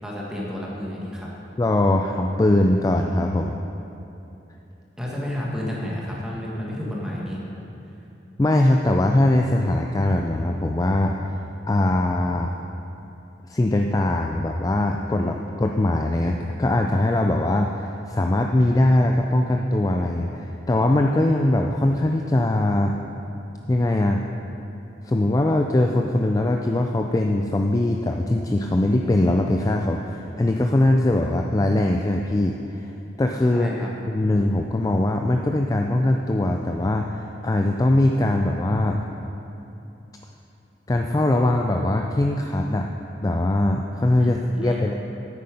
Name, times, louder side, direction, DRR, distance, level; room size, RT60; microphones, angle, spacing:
voice 1, 0.0-1.3 5.0-7.4 33.5-33.9 44.2-44.8, left 1 dB, 5° right, -5 dB, 1.6 m, -31 dB
voice 2, 1.6-3.6 8.4-11.2 11.7-12.5 13.5-23.0 23.7-24.3 25.0-32.9 33.2-33.7 34.1-39.0 40.9-42.9 43.2-44.9, left 1 dB, 20° left, 2 dB, 0.3 m, -21 dB
9.4 x 8.5 x 5.1 m, 2.8 s
head